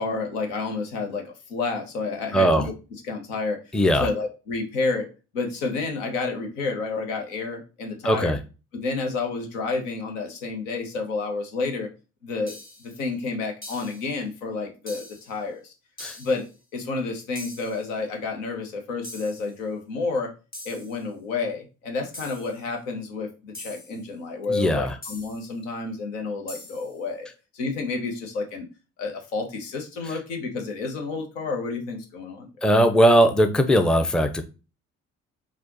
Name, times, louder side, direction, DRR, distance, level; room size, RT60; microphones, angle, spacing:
voice 1, 0.0-2.7 3.1-3.6 4.0-5.1 5.3-8.3 8.7-11.9 12.2-12.5 12.8-15.7 16.2-16.5 16.7-20.3 20.6-27.3 27.5-28.7 29.0-32.5, left 3 dB, 75° left, 3 dB, 1.0 m, -30 dB
voice 2, 2.3-2.7 3.7-4.1 8.0-8.4 16.0-16.2 24.5-25.0 30.0-30.1 32.6-34.4, equal, ahead, 7 dB, 0.6 m, -19 dB
sound 1, 12.5-13.0 13.6-14.1 14.9-15.4 16.0-16.5 17.4-17.9 19.0-19.6 20.5-21.0 22.1-22.6 23.5-24.1 25.0-25.5 26.5-27.0, left 2 dB, 25° left, 1.7 m, -42 dB
4.3 x 2.4 x 4.0 m, 0.31 s
figure-of-eight pair, 45°, 38 cm